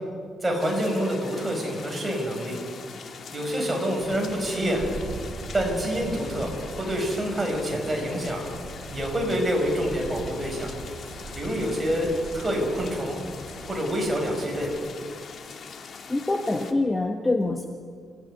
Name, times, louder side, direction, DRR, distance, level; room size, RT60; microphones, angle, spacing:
voice 1, 0.4-2.6 3.3-4.8 5.5-8.4 8.9-10.7 11.4-13.2 13.6-14.7, equal, 10° right, -1 dB, 6.1 m, -27 dB
sound 1, 0.6-16.7, left 5 dB, 45° left, 1.8 m, -42 dB
sound 2, 4.0-14.8, right 2 dB, 50° right, 6.3 m, -41 dB
voice 2, 16.1-17.7, left 2 dB, 15° left, 5 dB, 1.1 m, -25 dB
27.5 x 15.5 x 9.8 m, 2.1 s
cardioid pair, 155°, 0 cm